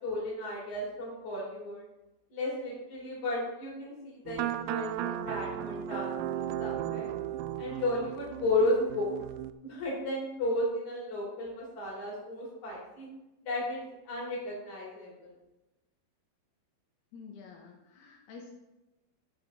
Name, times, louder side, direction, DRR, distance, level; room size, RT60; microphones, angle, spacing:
voice 1, 0.0-1.8 2.3-7.1 7.6-9.2 9.6-13.1 13.5-15.3, left 2 dB, 50° left, -3 dB, 4.5 m, -34 dB
sound 1, 4.3-9.5, right 11 dB, 90° right, 2.0 m, -35 dB
voice 2, 17.1-18.5, left 5 dB, 85° left, 0 dB, 3.2 m, -49 dB
13.5 x 7.5 x 3.7 m, 1.0 s
omnidirectional pair, 4.5 m